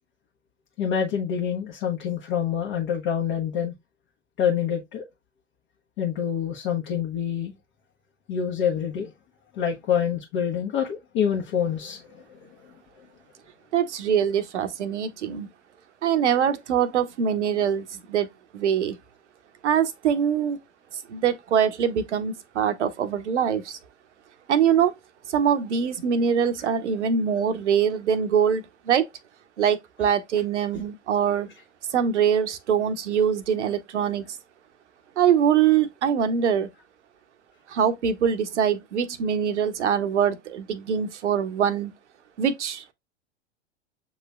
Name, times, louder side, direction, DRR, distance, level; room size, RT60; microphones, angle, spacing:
voice 1, 0.8-3.7 4.4-5.1 6.0-7.5 8.3-9.1 9.5-12.5, left 8 dB, 40° left, 1.0 m, -26 dB
voice 2, 13.7-15.5 16.0-18.3 18.5-19.0 19.6-20.6 21.1-23.8 24.5-24.9 25.3-29.1 29.6-31.5 31.9-34.3 35.2-36.7 37.7-41.9 42.4-42.9, right 8 dB, 70° right, 0.8 m, -23 dB
7.1 x 3.1 x 2.3 m
figure-of-eight pair, 90°, 36 cm